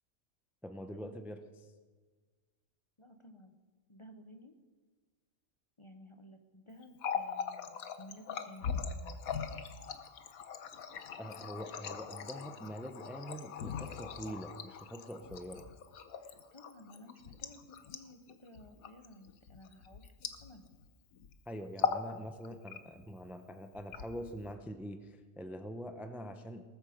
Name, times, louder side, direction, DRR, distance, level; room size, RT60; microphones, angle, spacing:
voice 1, 0.6-1.7 11.2-15.7 21.5-26.6, equal, ahead, 7 dB, 0.6 m, -44 dB
voice 2, 3.0-3.5 3.9-4.6 5.8-9.2 16.1-20.1 20.4-20.7, left 1 dB, 25° left, 6 dB, 0.8 m, -55 dB
Water tap faucet, 6.8-20.9 21.1-21.4 21.7-22.1 22.4-23.1 23.7-24.5, left 7 dB, 80° left, 1.4 m, -40 dB
19.0 x 13.5 x 5.1 m, 1.4 s
omnidirectional pair, 1.4 m